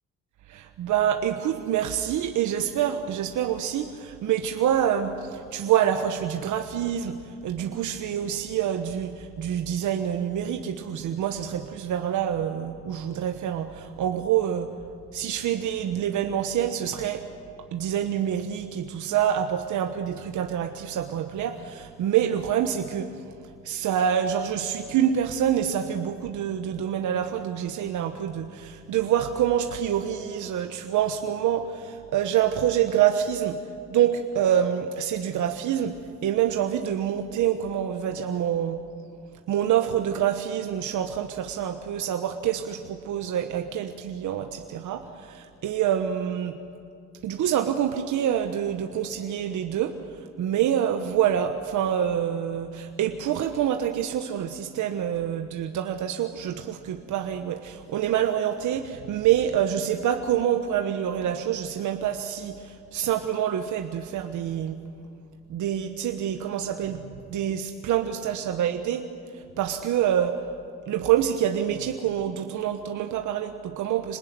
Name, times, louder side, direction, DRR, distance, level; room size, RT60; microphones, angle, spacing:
voice 1, 0.5-14.7 15.1-17.2 17.7-23.3 23.6-33.6 33.9-38.8 39.5-46.6 47.2-64.8 65.5-69.0 69.3-70.4 70.9-74.2, right 10 dB, 75° right, 6 dB, 1.3 m, -26 dB
26.5 x 20.0 x 9.5 m, 2.4 s
cardioid pair, 90°, 30 cm